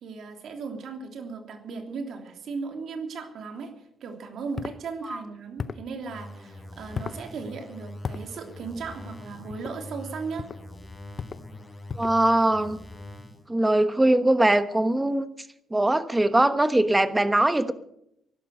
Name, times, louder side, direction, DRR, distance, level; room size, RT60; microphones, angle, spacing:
voice 1, 0.0-3.7 4.0-10.4, right 4 dB, 70° right, 4 dB, 3.2 m, -36 dB
sound 1, 4.6-4.8 5.6-5.9 6.9-7.2 8.0-8.3 9.5-9.8 10.4-10.6 11.2-11.5 11.9-12.2, left 6 dB, 45° left, 0.7 m, -35 dB
sound 2, 6.1-13.5, left 1 dB, 20° left, 4.8 m, -43 dB
voice 2, 12.0-12.8 13.5-15.3 15.7-17.7, right 1 dB, 10° right, 11 dB, 1.2 m, -21 dB
16.5 x 12.0 x 6.6 m, 0.76 s
cardioid pair, 90°, 0 cm